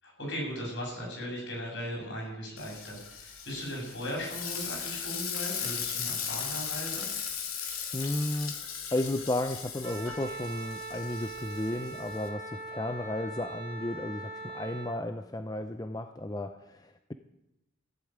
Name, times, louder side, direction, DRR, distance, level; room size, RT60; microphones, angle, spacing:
voice 1, 0.0-7.1, equal, 55° left, -2 dB, 6.7 m, -38 dB
Frying (food), 2.6-12.3, left 7 dB, 80° left, 2.3 m, -37 dB
voice 2, 7.9-8.5 8.9-17.1, left 1 dB, 15° left, 8 dB, 0.5 m, -33 dB
Wind instrument woodwind instrument, 9.8-15.0, right 2 dB, 45° right, 2.3 m, -41 dB
15.5 x 8.2 x 8.8 m, 0.92 s
head